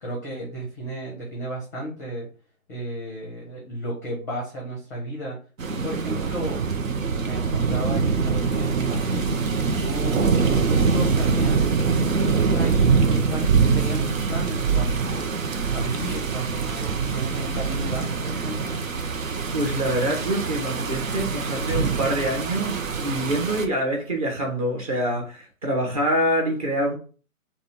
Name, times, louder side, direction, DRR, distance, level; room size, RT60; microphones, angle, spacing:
voice 1, 0.0-2.3 2.7-5.4 5.7-6.6 7.2-9.5 9.7-11.8 12.1-18.9, right 1 dB, 10° left, 0.6 m, -33 dB
sound 1, 5.6-23.7, right 5 dB, 65° right, 0.8 m, -24 dB
voice 2, 19.5-26.9, right 1 dB, 25° right, 0.9 m, -25 dB
3.8 x 2.3 x 4.3 m
figure-of-eight pair, 140°, 43 cm